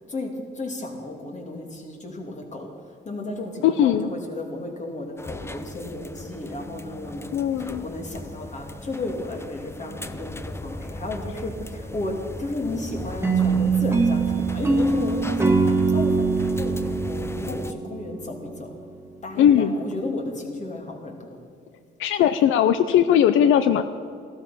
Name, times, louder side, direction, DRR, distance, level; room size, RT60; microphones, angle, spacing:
voice 1, 0.1-2.7 3.0-18.8 19.2-21.4, left 2 dB, 35° left, 2 dB, 2.8 m, -33 dB
voice 2, 3.6-4.1 7.3-7.8 19.4-19.8 22.0-23.8, left 9 dB, 85° left, 11 dB, 0.6 m, -19 dB
sound 1, 5.2-17.7, left 1 dB, 15° left, 0.7 m, -37 dB
sound 2, 13.2-18.4, right 4 dB, 10° right, 1.6 m, -23 dB
15.0 x 12.5 x 5.9 m, 2.3 s
cardioid pair, 90°, 20 cm